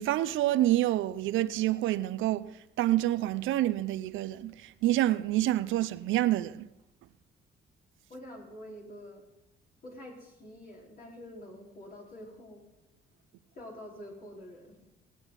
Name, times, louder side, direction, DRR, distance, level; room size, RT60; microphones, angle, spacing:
voice 1, 0.0-2.5 2.8-6.7, right 14 dB, 80° right, 0.5 m, -27 dB
voice 2, 8.1-9.2 9.8-12.6 13.5-14.8, equal, 45° left, 4.6 m, -47 dB
18.5 x 9.0 x 4.1 m
cardioid pair, 90°, 20 cm